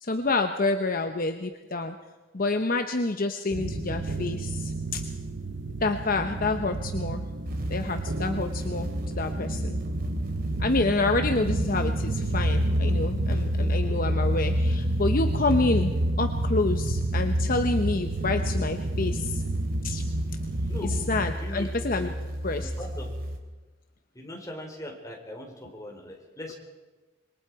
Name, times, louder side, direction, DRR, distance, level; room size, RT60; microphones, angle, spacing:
voice 1, 0.0-1.9 2.3-5.0 5.8-7.2 7.7-9.7 10.6-19.4 19.8-20.0 20.8-22.1 22.4-22.7, left 3 dB, 50° left, 7 dB, 0.9 m, -28 dB
sound 1, 3.5-21.3, right 1 dB, 70° right, 1.0 m, -29 dB
sound 2, 7.4-23.4, equal, 50° right, 2.7 m, -34 dB
voice 2, 21.3-22.1 22.6-23.1 24.1-26.5, left 1 dB, 20° left, 0 dB, 4.2 m, -40 dB
26.5 x 22.5 x 4.8 m, 1.2 s
head